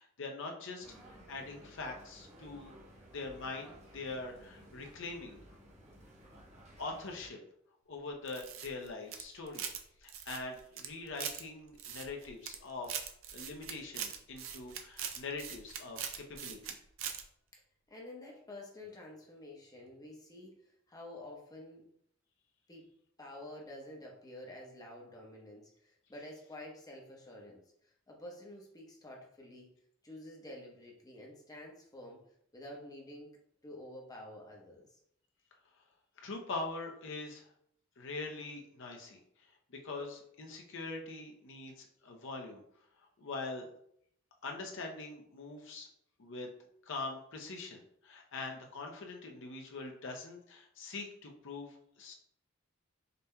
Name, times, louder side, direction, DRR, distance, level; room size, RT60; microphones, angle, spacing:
voice 1, 0.0-2.7 3.1-5.5 6.8-7.4 7.9-9.6 10.0-12.9 13.3-16.8 36.2-37.5 38.0-42.6 43.2-43.7 44.4-45.9 46.2-46.5 46.8-52.1, left 3 dB, 65° left, 2 dB, 0.7 m, -43 dB
sound 1, 0.8-7.3, equal, 35° right, 1.2 m, -56 dB
sound 2, 8.3-9.8 10.1-11.4 11.8-12.6 12.8-16.7 17.0-17.2, right 8 dB, 70° right, 0.5 m, -41 dB
voice 2, 17.9-21.9 22.7-22.9 23.2-29.7 30.0-33.3 33.6-35.0, left 1 dB, 20° left, -1 dB, 0.8 m, -49 dB
5.2 x 2.8 x 2.2 m, 0.70 s
head